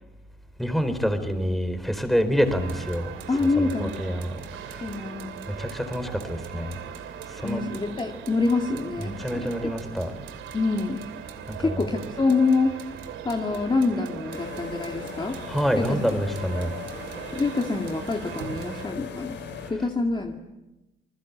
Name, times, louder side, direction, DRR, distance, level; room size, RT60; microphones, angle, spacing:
voice 1, 0.6-4.9 5.5-6.8 7.3-7.6 9.0-10.1 11.5-11.9 15.5-16.7 17.4-17.6 19.6-19.9, equal, ahead, 9 dB, 4.4 m, -27 dB
sound 1, 2.4-18.9, right 8 dB, 80° right, 2.9 m, -39 dB
voice 2, 3.3-4.0 4.8-5.4 7.4-9.7 10.5-11.1 11.6-15.4 15.8-16.0 17.3-19.4 19.7-20.4, left 3 dB, 25° left, 2 dB, 2.4 m, -26 dB
sound 2, 14.3-19.7, left 6 dB, 65° left, 5.3 m, -39 dB
29.0 x 20.5 x 8.7 m, 1.0 s
cardioid pair, 90°, 20 cm